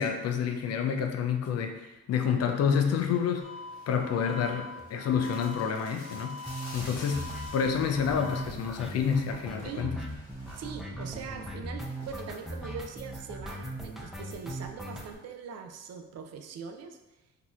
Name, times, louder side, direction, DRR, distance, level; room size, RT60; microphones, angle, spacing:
voice 1, 0.0-1.8 2.1-3.5 3.9-6.4 6.7-10.0, left 7 dB, 55° left, 5 dB, 0.5 m, -28 dB
sound 1, 2.2-12.9, equal, 30° left, 1.5 m, -52 dB
sound 2, 3.4-8.4, left 3 dB, 85° right, 1.3 m, -44 dB
sound 3, 4.3-4.5 4.8-4.9 5.1-5.2 5.5-5.6 5.8-15.2, right 1 dB, ahead, 0.5 m, -39 dB
voice 2, 9.6-9.9 10.5-17.0, right 6 dB, 55° right, 5 dB, 0.5 m, -42 dB
3.9 x 2.7 x 2.4 m, 0.99 s
cardioid pair, 90°, 30 cm